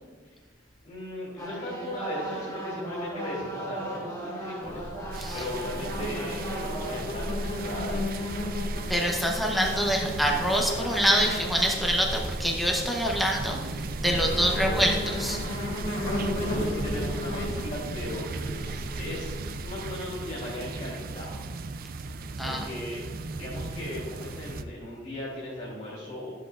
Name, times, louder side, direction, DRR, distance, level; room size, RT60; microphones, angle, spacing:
voice 1, 0.8-4.9 5.3-8.6 14.6-14.9 15.9-21.5 22.4-23.0 23.3-26.3, left 1 dB, 40° left, -6 dB, 2.7 m, -37 dB
sound 1, 1.4-7.0, right 2 dB, 15° left, 1.9 m, -37 dB
Insect, 4.6-19.8, left 1 dB, 65° left, 2.1 m, -34 dB
sound 2, 5.1-24.6, right 3 dB, 50° right, 0.4 m, -37 dB
voice 2, 8.9-13.6 14.0-15.4 22.4-22.7, equal, ahead, -1 dB, 0.8 m, -25 dB
12.5 x 7.6 x 2.4 m, 1.5 s
head